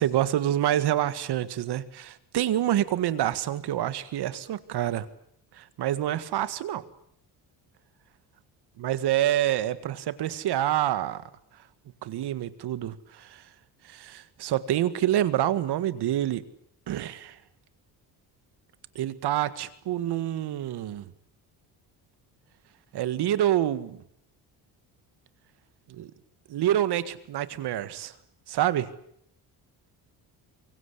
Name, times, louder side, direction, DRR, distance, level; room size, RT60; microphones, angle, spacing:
voice 1, 0.0-5.1 5.5-6.8 8.8-11.2 12.0-13.5 13.8-16.4 16.9-17.4 18.9-21.1 22.9-24.0 25.9-26.1 26.5-28.1 28.5-28.9, right 12 dB, 70° right, 14 dB, 1.8 m, -27 dB
25.0 x 23.5 x 8.4 m, 0.70 s
cardioid pair, 120°, 41 cm